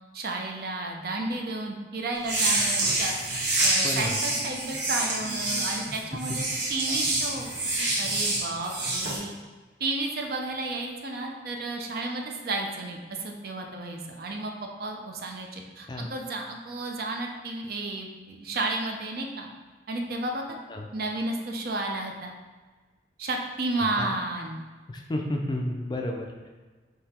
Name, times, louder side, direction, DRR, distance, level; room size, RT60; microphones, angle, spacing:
voice 1, 0.1-6.4 6.7-7.5 8.0-9.3 9.8-14.5 14.8-19.5 19.9-20.6 20.9-22.3 23.2-24.6, right 2 dB, 55° right, 2 dB, 0.5 m, -32 dB
sound 1, 2.2-9.2, right 2 dB, 80° right, 1.1 m, -27 dB
voice 2, 3.8-4.1 15.9-16.1 20.7-20.9 24.0-24.1 24.9-26.5, left 1 dB, 25° left, 2 dB, 0.3 m, -31 dB
3.8 x 2.8 x 4.2 m, 1.3 s
head